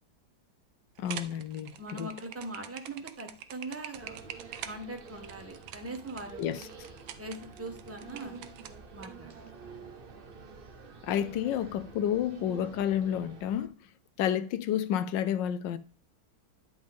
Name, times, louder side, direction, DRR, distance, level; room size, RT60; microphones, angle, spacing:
voice 1, 1.0-2.1 6.4-6.7 11.0-13.7 14.2-15.8, left 10 dB, 75° left, 1.2 m, -30 dB
sound 1, 1.0-9.1, right 10 dB, 80° right, 1.4 m, -45 dB
voice 2, 1.8-4.2 4.6-6.6 7.2-8.4 8.9-9.4, right 2 dB, 10° right, 1.0 m, -41 dB
sound 2, 3.9-13.7, right 5 dB, 45° right, 0.7 m, -48 dB
10.5 x 5.1 x 3.5 m
omnidirectional pair, 2.2 m